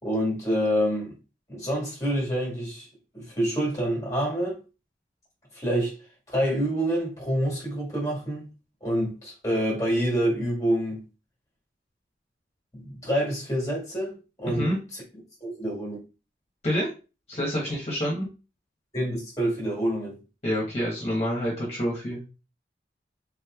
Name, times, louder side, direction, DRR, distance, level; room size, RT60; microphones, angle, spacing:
voice 1, 0.0-1.2 1.5-2.9 3.1-4.6 5.5-6.0 6.3-8.4 8.8-11.0 12.7-14.7 15.4-16.0 18.9-20.2, equal, 15° left, 1.6 m, -27 dB
voice 2, 14.5-14.8 16.6-16.9 17.3-18.3 20.4-22.2, equal, 35° left, 1.1 m, -27 dB
3.7 x 3.1 x 2.3 m
head